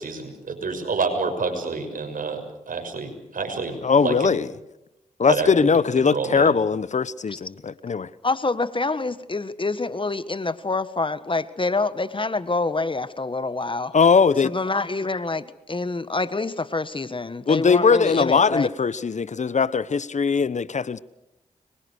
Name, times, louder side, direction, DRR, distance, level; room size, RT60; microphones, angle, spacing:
voice 1, 0.0-2.4 2.7-4.3 5.3-5.7 6.0-6.5, right 4 dB, 65° right, 6.3 m, -28 dB
voice 2, 3.8-4.5 5.2-8.1 13.9-14.5 17.5-21.0, left 5 dB, 50° left, 1.0 m, -20 dB
voice 3, 8.2-13.9 14.4-18.7, left 3 dB, 35° left, 1.5 m, -26 dB
25.0 x 23.0 x 6.5 m
cardioid pair, 45°, 15 cm